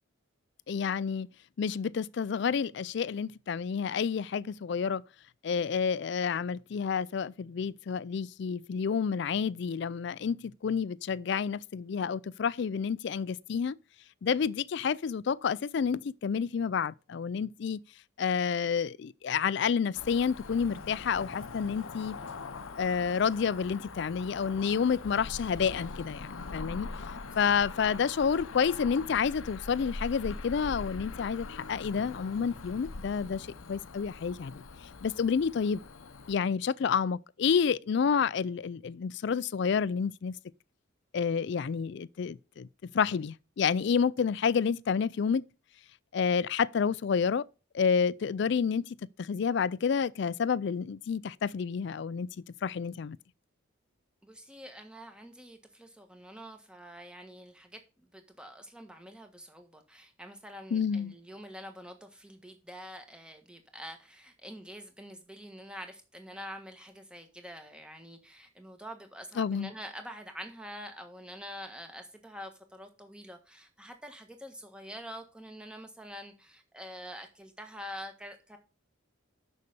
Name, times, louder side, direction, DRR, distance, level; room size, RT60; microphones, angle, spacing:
voice 1, 0.7-1.3 1.6-5.0 5.4-13.8 14.2-17.8 18.2-22.2 22.8-26.9 27.4-34.6 35.0-35.8 36.3-40.3 41.1-42.7 42.9-45.5 46.1-47.5 47.7-48.9 49.2-52.3 52.6-53.2 60.7-61.1 69.4-69.7, left 6 dB, 55° left, 0.3 m, -29 dB
Cricket / Motor vehicle (road), 19.9-36.3, left 4 dB, 80° left, 0.7 m, -43 dB
voice 2, 54.2-78.6, equal, 5° right, 1.4 m, -46 dB
6.7 x 6.4 x 6.9 m
head